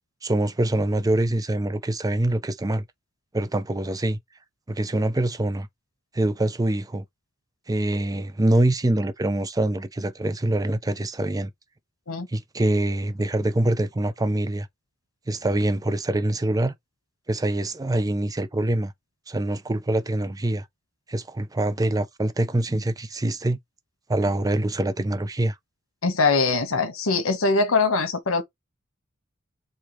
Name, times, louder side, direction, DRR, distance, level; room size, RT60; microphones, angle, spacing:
voice 1, 0.2-2.8 3.3-4.2 4.7-5.7 6.1-7.0 7.7-11.5 12.3-14.7 15.3-16.7 17.3-18.9 19.3-20.7 21.1-23.6 24.1-25.6, right 1 dB, 20° right, 0.5 m, -24 dB
voice 2, 26.0-28.4, left 4 dB, 90° left, 1.2 m, -22 dB
4.6 x 2.9 x 3.1 m
head